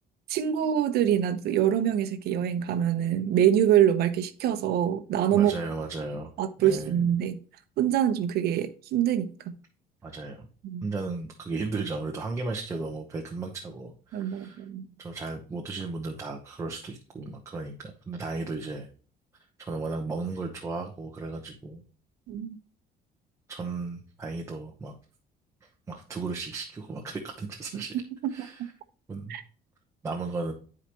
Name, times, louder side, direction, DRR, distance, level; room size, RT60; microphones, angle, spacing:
voice 1, 0.3-5.5 6.4-7.4 7.8-9.5 10.6-10.8 14.1-14.9 22.3-22.6 27.7-27.8 28.4-28.5 29.3-29.4, right 10 dB, 65° right, 1.0 m, -25 dB
voice 2, 5.3-6.3 6.6-7.1 10.0-10.5 10.8-14.6 15.0-18.9 19.6-21.8 23.5-24.9 25.6-28.0 28.3-28.7 29.1-29.4 30.0-30.5, right 3 dB, 15° right, 0.9 m, -35 dB
10.5 x 4.9 x 3.0 m
cardioid pair, 175°, 17 cm